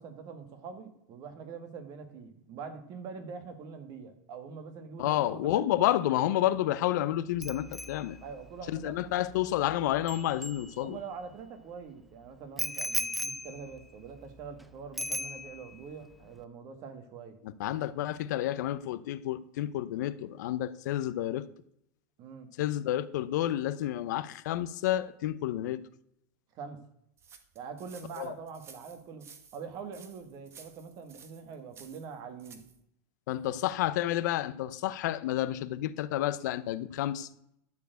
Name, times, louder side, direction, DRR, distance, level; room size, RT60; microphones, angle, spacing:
voice 1, 0.0-5.7 8.2-9.0 10.8-17.4 22.2-22.5 26.5-26.8 27.6-29.3 29.5-32.6, right 5 dB, 45° right, 1.9 m, -44 dB
voice 2, 5.0-8.2 8.7-11.0 17.4-21.5 22.6-25.8 28.2-28.3 33.3-37.3, left 13 dB, 80° left, 0.7 m, -30 dB
Bicycle bell, 7.4-11.2 12.6-14.6 15.0-15.8 16.1-16.4, equal, ahead, 0.4 m, -38 dB
sound 1, 27.2-32.8, right 6 dB, 30° right, 1.3 m, -54 dB
12.0 x 4.6 x 8.2 m
supercardioid pair, 145°, 9 cm